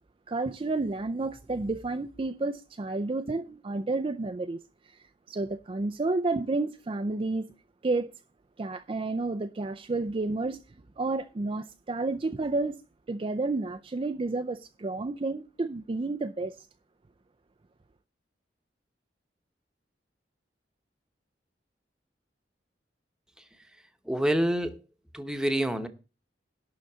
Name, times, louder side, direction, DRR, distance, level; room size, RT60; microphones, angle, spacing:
voice 1, 0.3-4.6 4.9-7.5 7.8-8.1 8.6-10.6 11.0-12.8 13.1-16.7, right 3 dB, 30° right, 0.4 m, -31 dB
voice 2, 24.1-24.8 25.1-25.9, right 1 dB, 5° right, 1.0 m, -27 dB
11.5 x 3.9 x 7.9 m
head